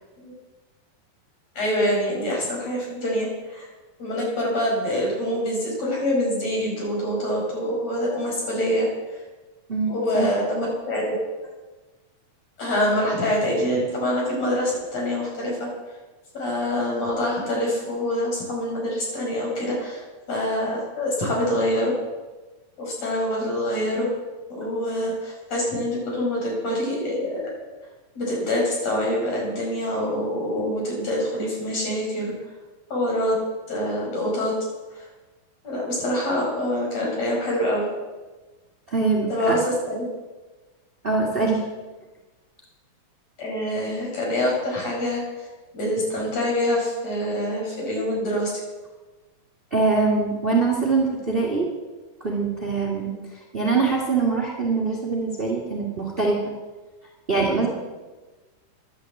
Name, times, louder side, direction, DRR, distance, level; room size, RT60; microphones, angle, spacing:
voice 1, 1.6-3.7 4.0-9.2 9.9-11.2 12.6-15.7 16.3-20.0 20.3-21.9 22.8-24.1 24.5-27.5 28.1-32.3 32.9-33.3 33.7-34.5 34.9-35.1 35.6-37.9 39.3-40.1 43.4-45.5 45.7-48.5, left 1 dB, 45° left, -3 dB, 5.9 m, -25 dB
voice 2, 9.7-10.3 38.9-39.5 41.0-41.6 49.7-51.7 52.2-53.1 53.5-56.4 57.3-57.7, right 4 dB, 25° right, -2 dB, 1.3 m, -23 dB
11.5 x 10.5 x 7.8 m, 1.2 s
omnidirectional pair, 4.2 m